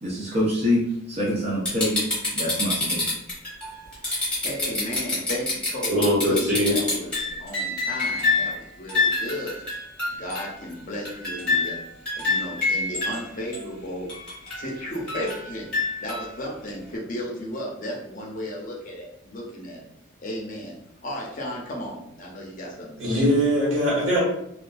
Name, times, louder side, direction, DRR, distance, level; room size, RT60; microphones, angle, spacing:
voice 1, 0.0-2.0 2.3-3.1, left 1 dB, 30° right, -6 dB, 0.5 m, -25 dB
sound 1, 1.6-8.5 8.9-10.7 11.0-13.2 13.5-13.6 14.1-16.3 16.7-16.8, left 3 dB, 5° left, 0.9 m, -26 dB
voice 2, 4.4-9.6 10.1-11.7 12.2-14.1 14.5-19.9 20.2-20.8 21.0-23.2, left 1 dB, 40° left, -2 dB, 0.6 m, -34 dB
voice 3, 5.9-6.8 23.0-24.2, equal, 75° right, -8 dB, 1.4 m, -21 dB
2.5 x 2.3 x 2.3 m, 0.76 s
head